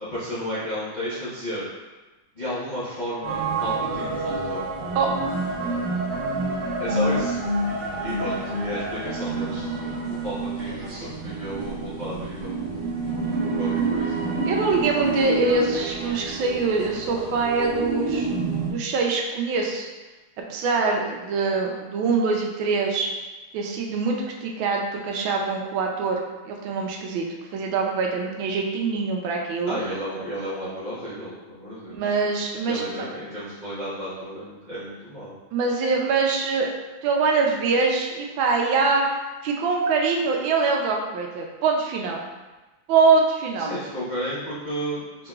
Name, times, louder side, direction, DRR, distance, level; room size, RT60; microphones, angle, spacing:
voice 1, 0.1-1.6 2.3-4.7 6.8-7.4 7.8-12.9 13.6-14.2 29.7-32.1 32.7-35.3 43.6-45.3, equal, 80° left, -12 dB, 0.4 m, -33 dB
sound 1, 3.2-18.7, right 3 dB, 60° right, 1.0 m, -28 dB
voice 2, 14.4-18.3 18.7-19.9 20.5-23.1 23.5-26.2 26.4-27.3 27.5-29.8 31.9-33.0 35.5-36.7 37.0-39.2 39.4-42.2 42.9-43.7, right 4 dB, 75° right, 0 dB, 1.3 m, -24 dB
3.9 x 3.8 x 2.3 m, 1.2 s
omnidirectional pair, 2.3 m